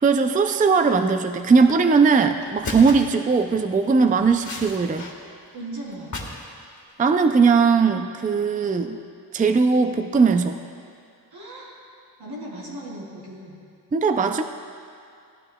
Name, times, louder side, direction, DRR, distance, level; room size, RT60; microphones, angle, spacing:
voice 1, 0.0-5.1 7.0-9.0 9.3-10.6 13.9-14.4, right 5 dB, 20° right, 7 dB, 0.4 m, -19 dB
sound 1, 1.9-2.0 2.4-3.2 3.8-5.1 5.4-6.5 6.8-7.1, left 2 dB, 45° left, 1.6 m, -35 dB
voice 2, 5.5-6.3 11.3-11.8 12.2-13.7, right 1 dB, 85° right, -4 dB, 3.3 m, -37 dB
18.5 x 13.5 x 2.3 m, 2.4 s
wide cardioid pair, 115°, 39 cm